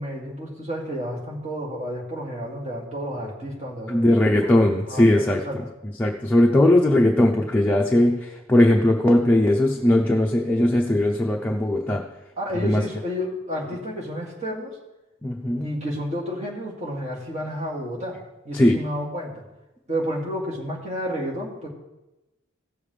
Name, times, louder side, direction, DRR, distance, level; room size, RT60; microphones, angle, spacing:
voice 1, 0.0-4.4 4.9-5.6 12.4-14.8 15.6-19.4 19.9-21.7, equal, 35° right, -3 dB, 2.3 m, -31 dB
voice 2, 3.9-12.0 12.6-12.8 15.2-15.7 18.5-18.8, left 1 dB, 10° left, -1 dB, 0.7 m, -19 dB
16.5 x 7.1 x 3.3 m, 1.0 s
head